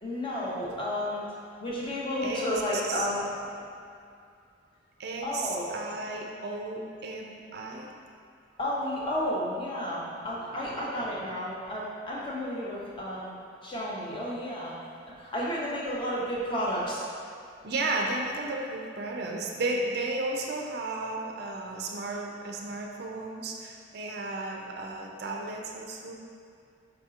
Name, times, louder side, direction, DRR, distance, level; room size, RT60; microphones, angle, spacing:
voice 1, 0.0-1.2 1.6-3.3 5.2-5.7 8.6-13.3 13.6-14.7 15.2-17.1, left 1 dB, 25° left, -6 dB, 0.7 m, -32 dB
voice 2, 2.2-3.1 5.0-7.9 10.1-11.2 17.6-26.1, right 2 dB, 55° right, 0 dB, 0.4 m, -34 dB
4.9 x 4.3 x 2.4 m, 2.4 s
head